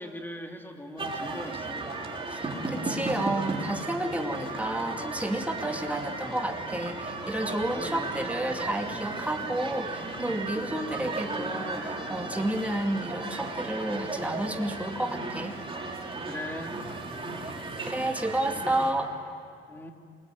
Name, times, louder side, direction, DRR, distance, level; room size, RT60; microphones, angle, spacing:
voice 1, 0.0-1.8 7.7-8.1 16.2-16.8 19.7-19.9, left 1 dB, 10° left, 3 dB, 3.0 m, -39 dB
sound 1, 1.0-18.9, right 3 dB, 25° right, 3.8 m, -35 dB
voice 2, 2.3-15.6 17.8-19.1, right 1 dB, 5° right, 3 dB, 2.5 m, -31 dB
27.5 x 20.5 x 9.2 m, 2.3 s
cardioid pair, 90°, 20 cm